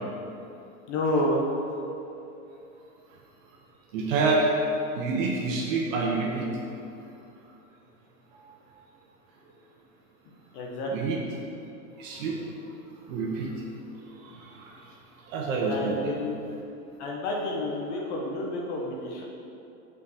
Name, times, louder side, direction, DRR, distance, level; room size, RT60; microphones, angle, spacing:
voice 1, 0.9-1.4 10.5-11.1 15.7-16.4 17.0-19.2, left 1 dB, 55° left, -2 dB, 1.4 m, -29 dB
voice 2, 3.9-4.4 4.9-6.5 10.9-11.2 12.0-12.4 13.1-13.5 14.4-14.6 15.3-16.1, right 3 dB, 60° right, -2 dB, 1.3 m, -27 dB
5.6 x 5.1 x 6.5 m, 2.7 s
hypercardioid pair, 115°, 43 cm